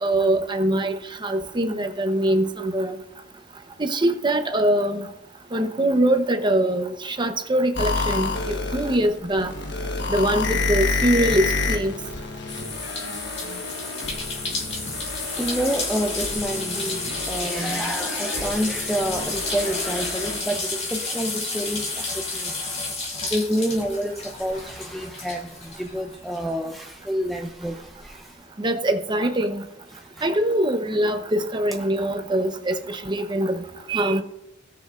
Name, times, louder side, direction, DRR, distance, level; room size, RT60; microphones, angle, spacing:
voice 1, 0.0-2.9 3.8-5.0 5.5-9.5 10.1-11.9 28.6-29.6 30.2-33.6 33.9-34.2, right 1 dB, 25° right, 0.8 m, -23 dB
sound 1, 7.7-20.4, left 3 dB, 65° left, 1.3 m, -29 dB
sound 2, 12.5-26.5 26.8-28.1, left 3 dB, 35° left, 2.5 m, -31 dB
voice 2, 15.4-22.0 22.3-22.5 23.3-28.3 30.2-30.3, equal, ahead, 0.4 m, -28 dB
18.0 x 6.6 x 2.5 m
head